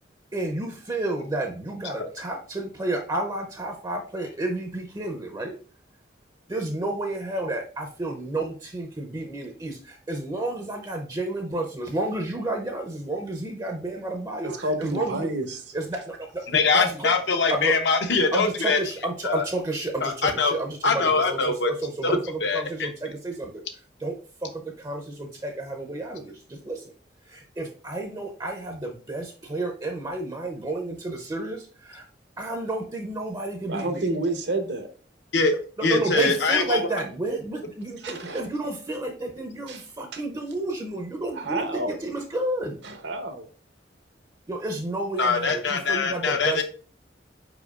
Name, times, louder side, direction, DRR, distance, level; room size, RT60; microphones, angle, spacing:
voice 1, 0.3-5.6 6.5-15.3 15.7-16.5 16.7-17.1 17.5-17.8 18.3-23.6 24.0-24.2 24.4-26.9 27.3-32.0 32.4-34.1 35.8-42.8 44.5-46.6, right 2 dB, 20° right, 3 dB, 0.5 m, -31 dB
voice 2, 14.4-15.8 33.7-34.9 38.0-38.4 39.7-39.9 40.1-40.2 41.3-42.0 42.8-43.5, right 2 dB, 75° right, 6 dB, 0.8 m, -30 dB
voice 3, 16.5-18.8 19.2-19.4 20.0-20.5 20.8-21.7 22.0-22.9 35.3-35.5 35.8-36.8 45.2-46.6, left 4 dB, 75° left, 5 dB, 0.8 m, -23 dB
4.9 x 4.6 x 2.3 m, 0.39 s
head